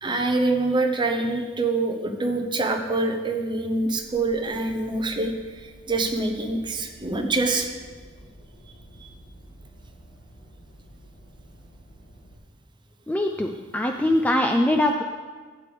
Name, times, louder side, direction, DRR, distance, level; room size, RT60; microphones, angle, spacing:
voice 1, 0.0-5.3 5.9-7.7 9.0-9.1, right 2 dB, 25° right, 3 dB, 0.8 m, -25 dB
sound 1, 3.8-12.4, right 1 dB, 45° left, 2.0 m, -50 dB
voice 2, 13.1-15.0, left 1 dB, 10° left, 3 dB, 0.3 m, -22 dB
12.5 x 8.5 x 3.4 m, 1.5 s
head